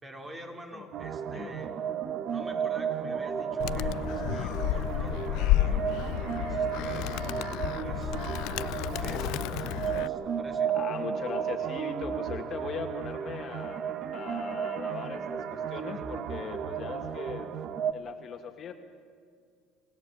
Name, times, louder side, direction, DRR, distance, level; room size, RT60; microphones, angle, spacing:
voice 1, 0.0-1.8 2.3-8.1 8.6-10.7 15.7-16.2, right 1 dB, 25° right, 3 dB, 4.2 m, -48 dB
sound 1, 0.9-17.9, right 8 dB, 55° right, 1.3 m, -33 dB
Animal, 3.6-10.1, left 15 dB, 75° left, 0.5 m, -31 dB
voice 2, 10.7-17.5 17.9-18.7, left 6 dB, 45° left, 5 dB, 2.1 m, -39 dB
27.0 x 16.5 x 8.4 m, 2.1 s
supercardioid pair, 100°, 0 cm